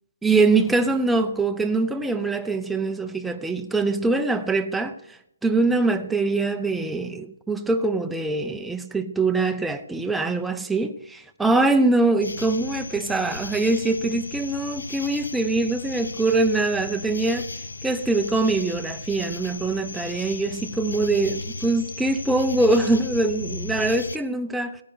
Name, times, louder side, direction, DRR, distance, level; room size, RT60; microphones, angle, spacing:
voice 1, 0.2-17.5 17.8-24.8, right 3 dB, 5° right, 0.7 m, -23 dB
sound 1, 12.2-24.2, left 3 dB, 85° left, 1.0 m, -36 dB
15.5 x 9.0 x 6.8 m
hypercardioid pair, 155°, 0 cm